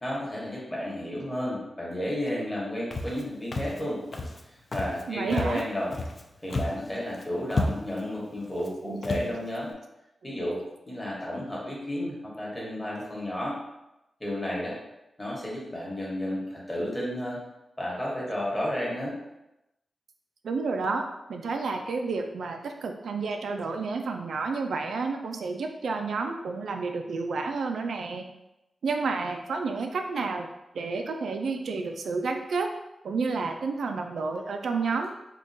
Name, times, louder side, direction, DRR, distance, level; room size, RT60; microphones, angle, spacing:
voice 1, 0.0-4.0 4.5-6.0 6.4-9.7 10.2-13.6 14.2-14.8 15.2-17.4 17.8-19.1, left 1 dB, 15° left, -5 dB, 1.0 m, -32 dB
Walk footsteps, 2.9-3.2 3.5-3.8 4.1-4.4 4.7-5.0 5.3-6.2 6.5-6.9 7.1-7.2 7.5-8.0 8.6-8.7 9.0-9.3, left 2 dB, 40° left, 0.3 m, -31 dB
voice 2, 5.1-5.6 8.8-9.2 20.4-21.0 21.3-28.2 28.8-30.5 30.7-32.7 33.0-35.1, right 4 dB, 85° right, 5 dB, 0.3 m, -30 dB
3.6 x 2.3 x 2.6 m, 0.91 s
wide cardioid pair, 140°, 0 cm